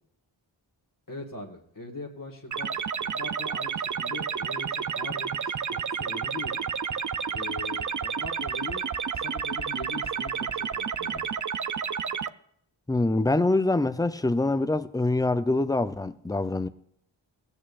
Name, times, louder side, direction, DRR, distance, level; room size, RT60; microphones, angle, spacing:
voice 1, 1.1-6.6 7.3-11.3, left 2 dB, 45° left, 1.7 m, -41 dB
sound 1, 2.5-12.3, right 7 dB, 40° right, 0.5 m, -31 dB
voice 2, 12.9-16.7, left 2 dB, 10° left, 0.5 m, -25 dB
16.5 x 8.8 x 2.5 m
wide cardioid pair, 70°, 47 cm